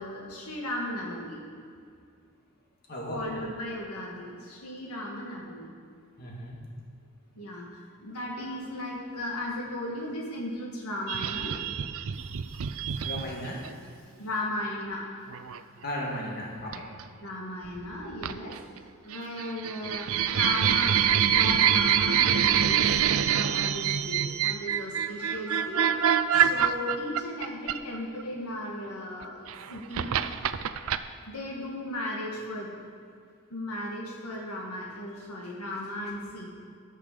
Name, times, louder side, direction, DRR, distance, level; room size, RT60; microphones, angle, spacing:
voice 1, 0.0-1.5 3.1-5.7 7.4-11.6 14.2-15.0 17.2-21.0 21.3-25.9 26.3-30.2 31.3-32.7 33.5-36.5, left 1 dB, 85° left, -2 dB, 1.8 m, -36 dB
voice 2, 2.9-3.2 6.2-6.6 12.1-13.9 15.8-16.8 26.3-26.5, equal, 45° left, -3 dB, 2.1 m, -37 dB
sound 1, 11.1-13.7 15.3-15.6 16.7-17.0 18.2-18.8 19.1-28.2 29.2-31.0, right 9 dB, 70° right, 0.4 m, -25 dB
12.5 x 6.7 x 6.7 m, 2.3 s
head